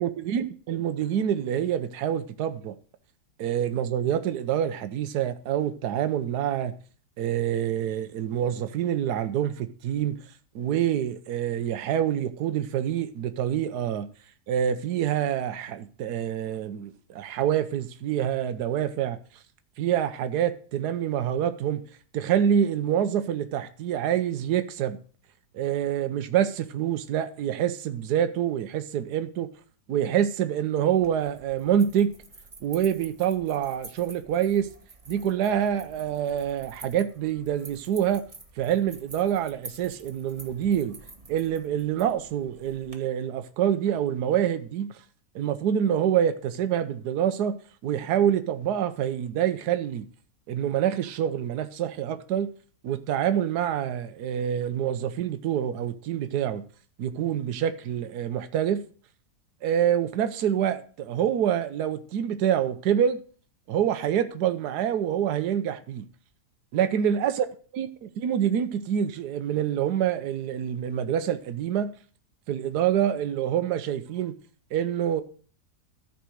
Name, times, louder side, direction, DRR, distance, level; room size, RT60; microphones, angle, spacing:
voice 1, 0.0-2.7 3.4-6.7 7.2-10.2 10.5-14.1 14.5-19.2 19.8-21.8 22.1-25.0 25.5-29.5 29.9-32.1 32.6-34.7 35.1-38.2 38.6-41.0 41.3-44.9 45.3-50.1 50.5-52.5 52.8-56.6 57.0-58.8 59.6-63.2 63.7-66.1 66.7-67.5 67.7-67.9 68.2-71.9 72.5-74.4 74.7-75.2, right 9 dB, 80° right, 1.3 m, -26 dB
sound 1, 30.9-43.0, right 3 dB, 25° right, 1.2 m, -49 dB
13.5 x 5.0 x 6.3 m
omnidirectional pair, 1.7 m